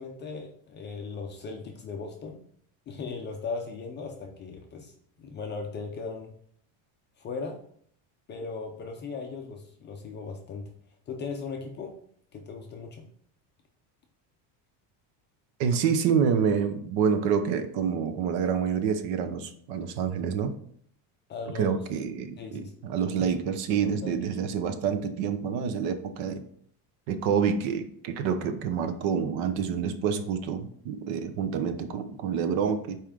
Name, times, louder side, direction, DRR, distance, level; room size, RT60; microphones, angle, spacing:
voice 1, 0.0-2.4 2.9-4.9 5.2-6.3 7.2-7.6 8.3-10.7 11.1-12.0 12.3-13.1 21.3-21.8 22.4-22.7 23.8-24.1, left 4 dB, 25° left, 2 dB, 0.4 m, -37 dB
voice 2, 15.6-20.5 21.5-26.4 27.1-33.0, right 7 dB, 65° right, 9 dB, 0.9 m, -27 dB
5.6 x 4.5 x 5.0 m, 0.63 s
cardioid pair, 170°, 48 cm